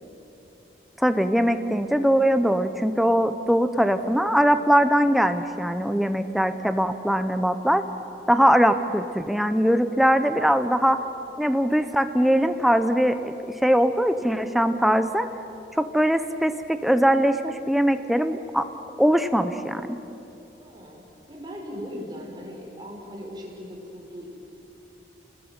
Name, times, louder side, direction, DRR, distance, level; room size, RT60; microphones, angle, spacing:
voice 1, 1.0-7.9 8.3-11.0 11.4-15.3 15.8-18.7 19.0-20.0, equal, ahead, 9 dB, 0.8 m, -21 dB
voice 2, 20.5-24.2, equal, 25° right, -1 dB, 5.5 m, -39 dB
29.5 x 20.5 x 9.6 m, 2.9 s
head